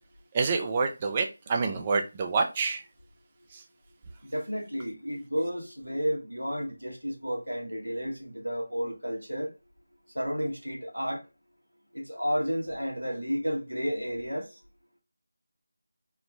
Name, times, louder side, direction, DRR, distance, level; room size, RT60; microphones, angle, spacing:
voice 1, 0.3-2.8 3.5-3.6, right 4 dB, 20° right, 0.5 m, -27 dB
voice 2, 4.2-9.5 10.2-11.2 11.9-14.5, equal, 85° right, 1.7 m, -32 dB
4.2 x 2.2 x 3.7 m
figure-of-eight pair, 165°, 0 cm